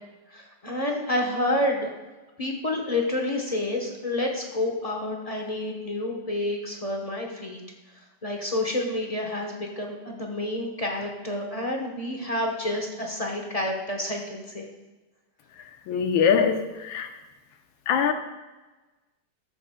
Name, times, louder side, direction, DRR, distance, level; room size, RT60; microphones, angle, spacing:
voice 1, 0.3-1.9 2.4-7.6 8.2-14.7, left 1 dB, 30° left, 0 dB, 0.7 m, -29 dB
voice 2, 15.9-17.1 17.9-18.1, left 7 dB, 90° left, 6 dB, 1.6 m, -22 dB
13.0 x 7.8 x 2.2 m, 1.2 s
omnidirectional pair, 2.1 m